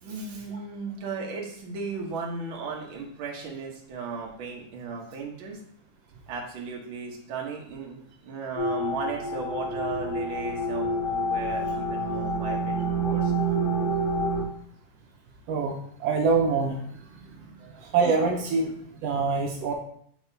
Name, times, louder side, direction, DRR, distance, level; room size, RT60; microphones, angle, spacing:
voice 1, 0.0-5.6 6.3-13.5 17.6-17.9, right 4 dB, 60° right, -1 dB, 1.3 m, -36 dB
sound 1, 8.6-14.4, right 1 dB, 55° left, 2.4 m, -28 dB
voice 2, 16.0-16.8 17.8-18.7 19.0-19.7, right 4 dB, 85° right, 1 dB, 1.3 m, -24 dB
9.4 x 4.2 x 2.7 m, 0.64 s
omnidirectional pair, 3.7 m